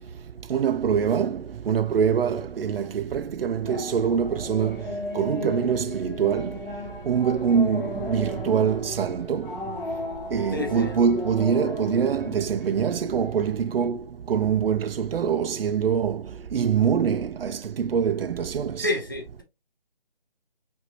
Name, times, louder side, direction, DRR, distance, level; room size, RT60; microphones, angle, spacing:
voice 1, 0.5-4.8 5.1-6.6 7.1-9.5 10.3-14.0 14.3-16.2 16.5-18.9, right 7 dB, 75° right, 0.4 m, -24 dB
sound 1, 3.6-13.9, left 2 dB, 60° left, 1.8 m, -36 dB
voice 2, 10.5-11.0 18.8-19.4, left 2 dB, 20° left, 0.6 m, -29 dB
5.2 x 2.6 x 3.0 m
figure-of-eight pair, 165°, 30 cm